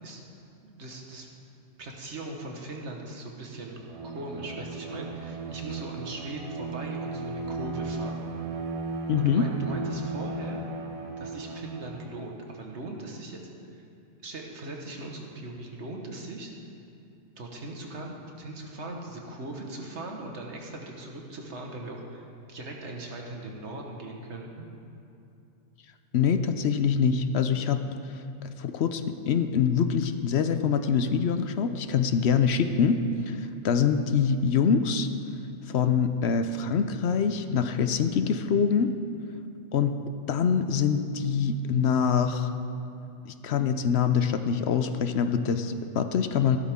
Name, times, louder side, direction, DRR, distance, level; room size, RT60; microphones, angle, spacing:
voice 1, 0.6-1.3 1.8-3.8 4.0-8.3 9.1-10.6 11.2-13.4 13.7-13.8 14.2-16.5 17.3-24.7, right 2 dB, 70° right, 0 dB, 1.7 m, -39 dB
Bowed string instrument, 3.8-12.3, right 3 dB, 40° right, 0.5 m, -36 dB
voice 2, 9.1-9.5 26.1-27.8 28.4-35.1 35.7-38.9 39.7-39.9 40.3-42.5 43.3-46.6, left 6 dB, 65° left, 9 dB, 0.9 m, -24 dB
15.0 x 12.5 x 3.6 m, 2.7 s
omnidirectional pair, 1.2 m